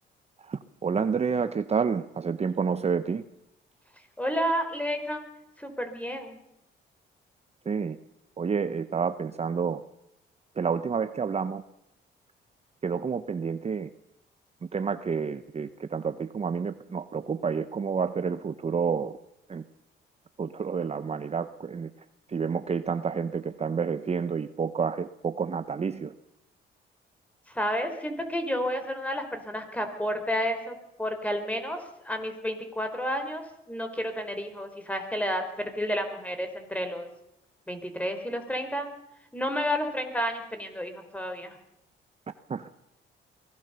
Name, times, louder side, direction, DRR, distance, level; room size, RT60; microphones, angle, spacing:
voice 1, 0.5-3.2 7.7-8.0 8.4-9.8 10.6-11.6 12.8-13.9 14.7-19.1 19.5-19.6 20.4-21.9 22.3-26.1 42.5-42.7, right 6 dB, 30° right, 11 dB, 0.9 m, -29 dB
voice 2, 4.2-5.3 5.6-6.4 27.5-31.8 32.0-37.1 37.7-38.9 39.3-41.6, equal, 5° left, 7 dB, 4.3 m, -31 dB
23.0 x 17.5 x 6.9 m, 0.84 s
cardioid pair, 90°, 20 cm